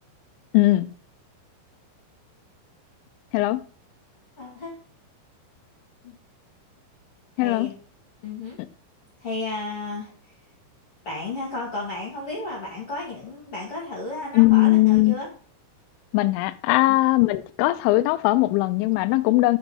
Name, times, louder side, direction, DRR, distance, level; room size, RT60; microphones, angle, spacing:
voice 1, 0.5-0.9 3.3-3.6 7.4-7.7 14.3-15.1 16.1-19.6, left 19 dB, 85° left, 3.0 m, -19 dB
voice 2, 4.4-4.7 6.0-6.1 7.4-7.7 8.2-8.6 9.2-10.3 11.0-15.3 16.9-17.0, left 2 dB, 50° left, 1.7 m, -33 dB
6.6 x 6.1 x 5.3 m
omnidirectional pair, 5.7 m